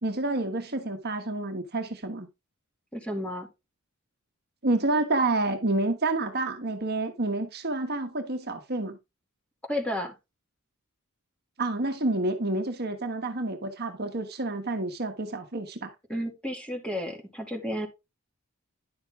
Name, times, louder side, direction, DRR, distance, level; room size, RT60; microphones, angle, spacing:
voice 1, 0.0-2.3 4.6-9.0 11.6-15.9, right 2 dB, 45° right, 1.3 m, -29 dB
voice 2, 2.9-3.5 9.7-10.1 16.1-17.9, equal, 5° left, 2.3 m, -32 dB
10.5 x 6.5 x 3.5 m
head